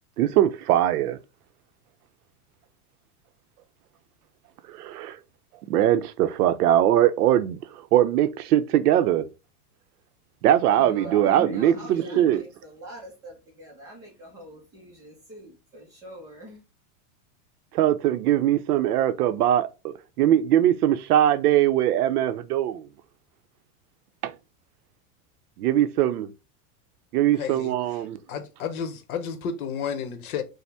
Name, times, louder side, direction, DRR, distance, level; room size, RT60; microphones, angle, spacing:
voice 1, 0.2-1.2 4.7-5.2 5.7-9.3 10.4-12.4 17.7-22.9 24.2-24.3 25.6-26.3 27.1-28.2, right 12 dB, 85° right, 0.7 m, -21 dB
voice 2, 10.7-16.6, right 1 dB, 10° right, 0.4 m, -40 dB
voice 3, 27.4-27.7 28.3-30.4, left 7 dB, 70° left, 1.0 m, -31 dB
5.4 x 2.1 x 3.3 m
supercardioid pair, 165°, 45 cm